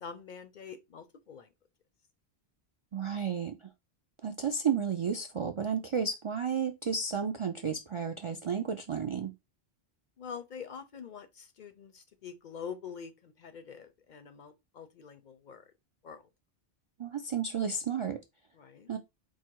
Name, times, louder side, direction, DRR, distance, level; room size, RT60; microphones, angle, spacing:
voice 1, 0.0-1.5 10.2-15.6 16.0-16.2 18.5-18.9, left 6 dB, 55° left, 0.6 m, -45 dB
voice 2, 2.9-3.7 4.2-9.3 17.0-18.2 18.9-19.0, right 6 dB, 50° right, 0.4 m, -32 dB
4.5 x 2.2 x 4.5 m
omnidirectional pair, 1.1 m